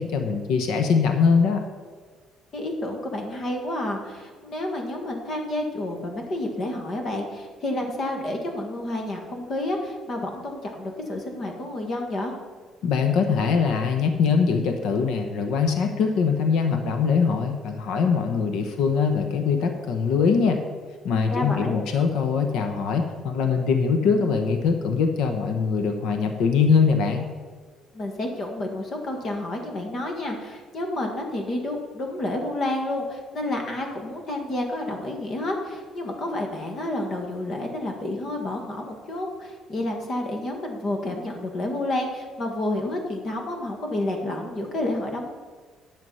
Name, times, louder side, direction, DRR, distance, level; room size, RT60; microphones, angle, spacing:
voice 1, 0.0-1.6 12.8-20.6 21.0-27.3, left 5 dB, 75° left, 5 dB, 1.0 m, -22 dB
voice 2, 2.5-12.3 21.3-21.8 27.9-45.3, left 1 dB, 40° left, 2 dB, 1.7 m, -30 dB
11.0 x 7.0 x 5.6 m, 1.5 s
cardioid pair, 160°, 0 cm